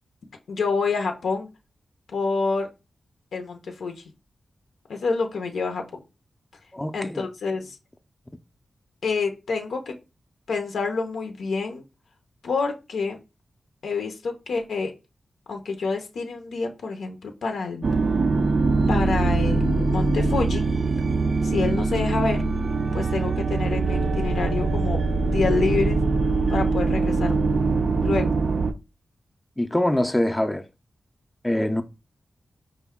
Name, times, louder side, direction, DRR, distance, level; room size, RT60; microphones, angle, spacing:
voice 1, 0.5-1.5 2.1-2.7 3.3-4.0 4.9-5.8 6.9-7.8 9.0-9.9 10.5-11.8 12.4-13.2 13.8-14.9 15.5-17.9 18.9-20.6 21.4-22.4 22.9-26.0 26.5-27.3 28.0-28.3, left 4 dB, 85° left, 0.6 m, -27 dB
voice 2, 6.7-7.2 29.6-30.7 31.4-31.8, left 1 dB, 10° left, 0.4 m, -24 dB
sound 1, 17.8-28.7, right 3 dB, 55° right, 0.4 m, -23 dB
4.8 x 2.2 x 3.5 m
cardioid pair, 70°, 0 cm